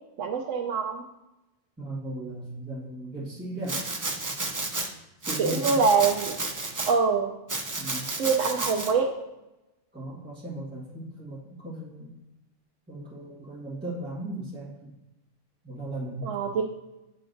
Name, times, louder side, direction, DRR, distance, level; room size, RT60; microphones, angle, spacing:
voice 1, 0.2-1.0 5.4-6.4 6.9-7.3 8.2-9.1 16.2-16.6, right 5 dB, 80° right, -2 dB, 1.0 m, -24 dB
voice 2, 1.8-3.8 5.2-5.8 7.8-8.1 9.9-12.1 12.9-14.9 15.6-16.3, right 1 dB, 10° right, -8 dB, 1.4 m, -37 dB
Domestic sounds home sounds, 3.7-4.9 5.2-6.9 7.5-8.9, right 2 dB, 30° right, 0.3 m, -32 dB
9.5 x 6.7 x 2.6 m, 0.99 s
omnidirectional pair, 1.3 m